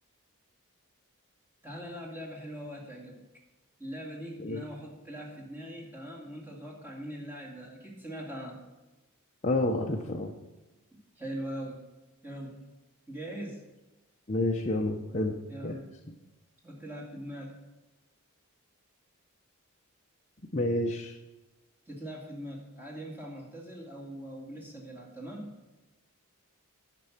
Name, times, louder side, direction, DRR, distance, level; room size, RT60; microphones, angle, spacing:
voice 1, 1.6-3.2 3.8-8.6 11.2-11.8 12.2-12.6 13.1-13.6 15.5-15.9 16.6-17.6 21.9-25.6, equal, 10° right, -3 dB, 2.0 m, -41 dB
voice 2, 9.4-10.3 14.3-15.3 15.6-15.8 20.5-21.2, left 1 dB, 30° left, 0 dB, 0.7 m, -29 dB
11.0 x 6.1 x 5.8 m, 1.1 s
head